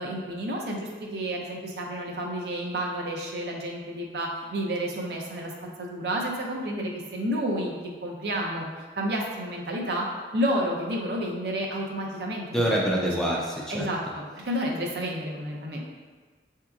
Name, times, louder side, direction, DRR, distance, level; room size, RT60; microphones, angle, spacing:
voice 1, 0.0-5.5 5.8-7.7 8.0-8.7 9.0-10.1 10.3-13.3 13.7-15.8, equal, 60° right, -1 dB, 0.7 m, -30 dB
voice 2, 12.5-13.9, equal, 5° left, -4 dB, 0.4 m, -25 dB
6.7 x 2.8 x 2.4 m, 1.4 s
head